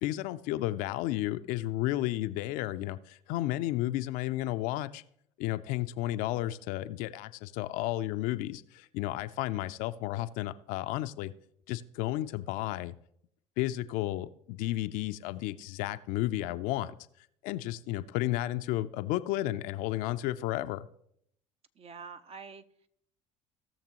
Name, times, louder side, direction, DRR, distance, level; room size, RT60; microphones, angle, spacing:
voice 1, 0.0-5.0 5.4-11.3 11.7-12.9 13.6-16.9 17.4-20.9, left 15 dB, 65° left, 11 dB, 0.5 m, -32 dB
voice 2, 21.8-22.9, right 5 dB, 40° right, 9 dB, 0.8 m, -47 dB
18.0 x 6.6 x 3.0 m, 0.71 s
hypercardioid pair, 70°, 15 cm